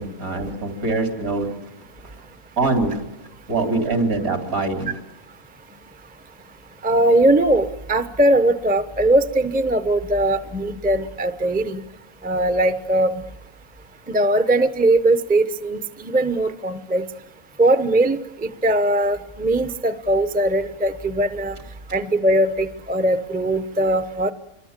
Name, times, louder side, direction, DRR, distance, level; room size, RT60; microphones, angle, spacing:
voice 1, 0.0-1.5 2.6-3.0 3.5-4.9, right 3 dB, 75° right, 4 dB, 4.1 m, -23 dB
voice 2, 6.8-11.8 12.2-13.1 14.1-17.0 17.6-21.5 21.9-24.3, right 1 dB, 10° right, 11 dB, 0.7 m, -20 dB
27.0 x 23.0 x 7.5 m, 0.92 s
omnidirectional pair, 1.5 m